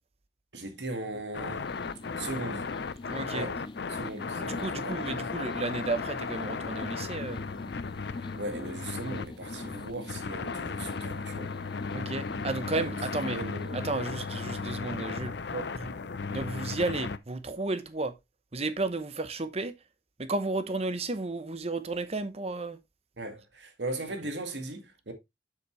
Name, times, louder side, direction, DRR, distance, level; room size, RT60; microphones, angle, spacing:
voice 1, 0.5-1.7 2.2-2.7 3.3-3.5 3.9-5.2 8.1-11.5 12.7-14.0 15.5-15.8 23.2-25.1, right 2 dB, 80° right, 2.1 m, -38 dB
sound 1, 1.3-17.2, left 4 dB, 70° left, 0.6 m, -36 dB
sound 2, 1.6-13.9, left 2 dB, 25° left, 0.4 m, -44 dB
voice 2, 3.1-3.5 4.4-7.4 11.9-13.4 13.7-15.3 15.8-15.9 16.3-18.2 18.5-19.7 20.2-22.8, right 3 dB, 35° right, 0.8 m, -33 dB
7.3 x 6.8 x 3.2 m
head